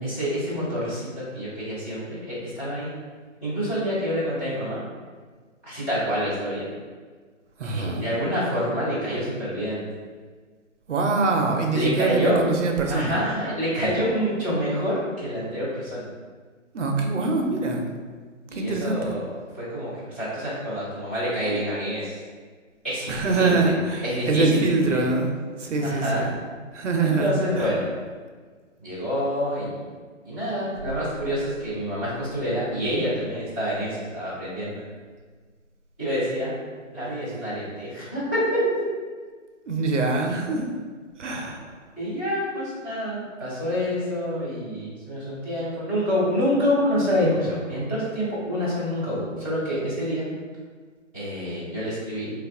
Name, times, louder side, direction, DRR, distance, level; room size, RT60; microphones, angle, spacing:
voice 1, 0.0-2.9 3.4-4.8 5.6-6.6 7.6-9.8 11.7-12.4 12.9-16.1 18.5-22.2 22.8-23.7 24.0-24.6 24.9-25.0 25.8-26.3 27.0-27.9 28.8-29.9 30.2-34.8 36.0-36.6 36.9-38.6 41.3-41.4 42.0-50.3 51.1-52.3, equal, 10° left, -17 dB, 0.5 m, -27 dB
voice 2, 7.6-8.0 10.9-13.2 16.7-17.9 18.5-19.1 23.1-25.3 25.6-26.3 26.7-27.3 27.6-27.7 39.7-40.7 41.2-41.8, right 3 dB, 65° right, 2 dB, 0.6 m, -24 dB
3.3 x 2.4 x 3.4 m, 1.5 s
figure-of-eight pair, 150°, 39 cm